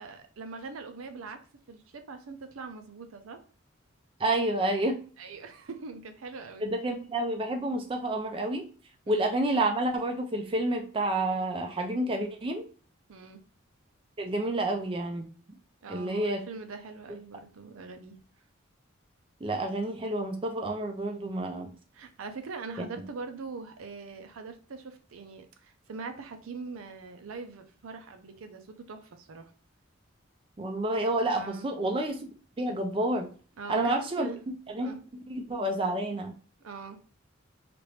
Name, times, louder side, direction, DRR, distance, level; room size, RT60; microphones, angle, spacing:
voice 1, 0.0-1.4 1.7-3.4 5.2-6.7 9.1-9.2 13.1-13.4 15.8-18.2 21.9-29.5 31.3-31.7 33.6-34.4 34.8-35.0 36.6-37.0, right 4 dB, 90° right, 7 dB, 0.5 m, -42 dB
voice 2, 4.2-5.0 6.6-8.6 9.1-12.7 14.2-15.3 15.9-16.4 19.4-21.7 22.8-22.9 30.6-32.3 32.6-33.3 33.7-34.3 34.7-34.9 35.3-36.3, right 1 dB, 25° right, 3 dB, 0.4 m, -29 dB
3.0 x 2.5 x 3.1 m, 0.39 s
head